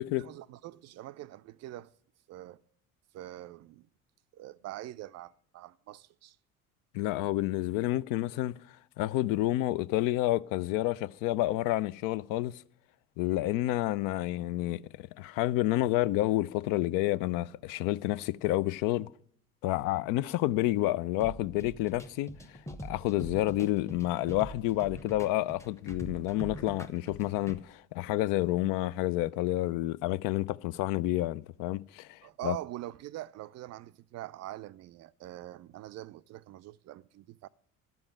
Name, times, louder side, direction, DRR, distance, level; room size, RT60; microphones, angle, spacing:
voice 1, 0.0-1.9 2.3-2.6 3.1-3.9 4.3-6.4 32.2-37.5, right 15 dB, 40° right, 0.5 m, -44 dB
voice 2, 6.9-8.6 9.0-12.6 13.2-19.1 19.6-22.3 22.8-32.6, left 15 dB, 55° left, 0.5 m, -29 dB
sound 1, 21.2-27.6, equal, 5° left, 1.0 m, -44 dB
12.0 x 7.0 x 7.8 m
hypercardioid pair, 60°, 40 cm